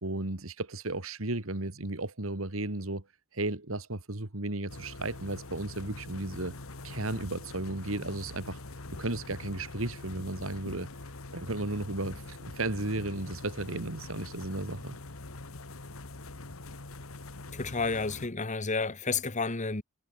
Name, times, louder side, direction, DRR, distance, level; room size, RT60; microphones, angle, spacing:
voice 1, 0.0-3.0 3.3-6.6 6.8-8.6 9.0-10.9 11.3-15.0, right 2 dB, 80° right, 2.5 m, -34 dB
sound 1, 4.7-18.3, left 2 dB, 90° left, 1.8 m, -44 dB
voice 2, 17.5-19.8, left 4 dB, 35° left, 1.4 m, -31 dB
head